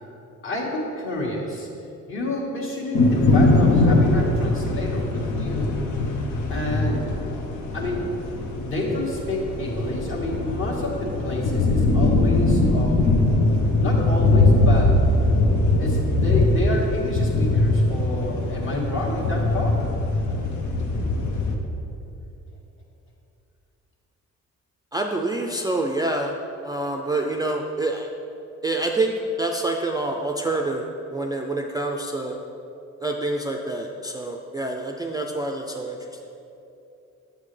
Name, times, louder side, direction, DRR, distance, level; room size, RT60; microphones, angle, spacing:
voice 1, 0.4-1.7 2.1-5.8 6.5-7.0 7.7-8.1 8.5-13.2 13.8-15.0 15.8-19.8, left 1 dB, 45° left, -3 dB, 1.6 m, -29 dB
sound 1, 2.9-21.6, left 2 dB, 75° left, 0.9 m, -21 dB
voice 2, 24.9-26.3 26.6-28.1 28.6-32.4 33.0-36.0, right 2 dB, 15° right, 1 dB, 0.4 m, -27 dB
7.5 x 6.9 x 3.2 m, 2.8 s
cardioid pair, 90°, 30 cm